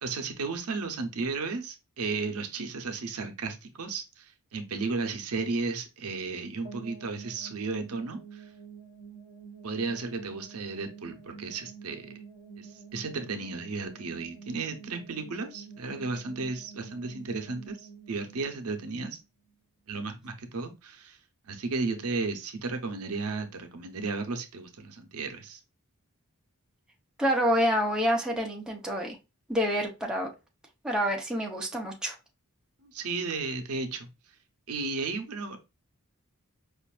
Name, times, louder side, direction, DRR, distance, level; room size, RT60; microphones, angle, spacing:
voice 1, 0.0-8.4 9.6-12.1 12.6-19.2 19.9-21.2 21.4-25.6 32.8-34.1 34.7-35.6, right 4 dB, 75° right, 6 dB, 0.7 m, -34 dB
sound 1, 6.6-19.5, right 6 dB, 80° left, 1.1 m, -48 dB
voice 2, 27.2-29.2 29.5-30.3 30.8-32.1, equal, 5° right, 0 dB, 0.6 m, -27 dB
5.0 x 2.5 x 2.3 m, 0.27 s
head